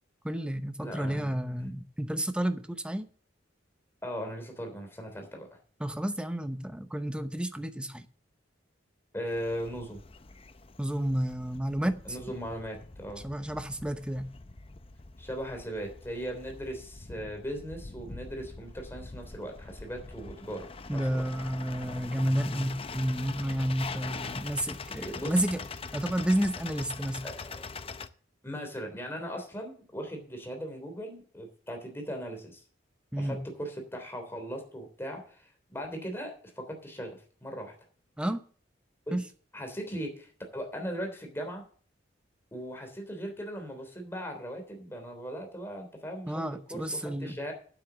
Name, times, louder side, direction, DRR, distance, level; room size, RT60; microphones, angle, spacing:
voice 1, 0.2-3.1 5.8-8.1 10.8-12.2 13.2-14.3 20.9-25.6 25.9-27.2 33.1-33.4 38.2-38.4 39.1-39.2 46.3-47.4, right 1 dB, 5° right, 0.8 m, -31 dB
voice 2, 0.8-1.3 4.0-5.5 9.1-10.0 12.0-13.2 15.2-21.2 25.0-25.3 27.2-27.7 28.4-32.6 33.2-37.7 39.1-39.2 39.5-41.6 42.5-46.4 46.7-47.5, equal, 15° left, 3.3 m, -38 dB
sound 1, 9.3-28.1, left 4 dB, 30° left, 0.6 m, -43 dB
9.3 x 7.9 x 6.9 m
head